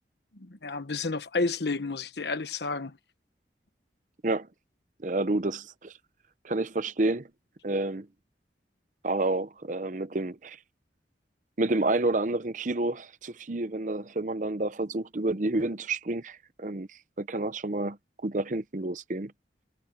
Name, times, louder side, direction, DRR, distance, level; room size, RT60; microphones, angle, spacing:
voice 1, 0.3-3.0, left 3 dB, 70° left, 1.2 m, -31 dB
voice 2, 5.0-5.9 6.4-7.3 7.6-8.1 9.0-10.6 11.6-16.9 17.2-18.0 18.2-19.3, right 2 dB, 45° right, 0.7 m, -29 dB
head